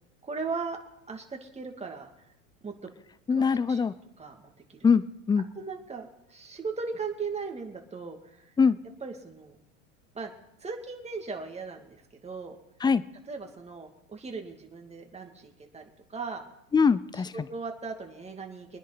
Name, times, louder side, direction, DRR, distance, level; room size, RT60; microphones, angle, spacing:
voice 1, 0.2-0.8 1.1-2.1 2.6-2.7 3.3-3.8 4.2-4.8 5.6-8.4 9.0-9.6 10.1-10.3 10.6-12.6 13.3-16.4 17.1-18.8, right 4 dB, 15° right, 3 dB, 2.4 m, -38 dB
voice 2, 3.3-3.9 4.8-5.4 8.6-8.8 12.8-13.0 16.7-17.3, left 5 dB, 10° left, 17 dB, 0.5 m, -22 dB
24.5 x 10.0 x 4.1 m, 0.84 s
hypercardioid pair, 90°, 38 cm